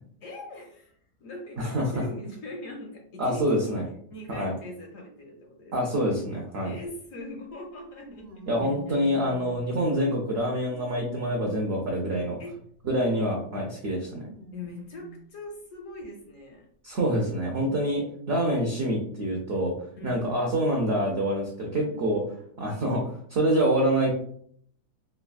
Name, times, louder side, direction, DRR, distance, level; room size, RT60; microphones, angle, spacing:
voice 1, 0.2-0.9 1.2-3.8 4.1-6.1 6.6-8.3 8.6-9.0 12.4-12.5 14.5-16.7 20.0-20.2 21.8-22.0, left 1 dB, 70° left, 1 dB, 0.8 m, -41 dB
voice 2, 1.6-2.0 3.2-3.8 4.3-4.5 5.7-6.7 8.5-12.4 12.8-14.2 16.8-19.7 20.0-22.2 22.6-24.1, right 1 dB, 80° right, -1 dB, 0.5 m, -26 dB
sound 1, 6.8-6.9 8.0-10.1 10.7-12.7 13.9-15.3 16.0-16.1 17.2-17.3, left 3 dB, 55° right, 1.1 m, -46 dB
3.3 x 2.2 x 2.3 m, 0.64 s
omnidirectional pair, 1.7 m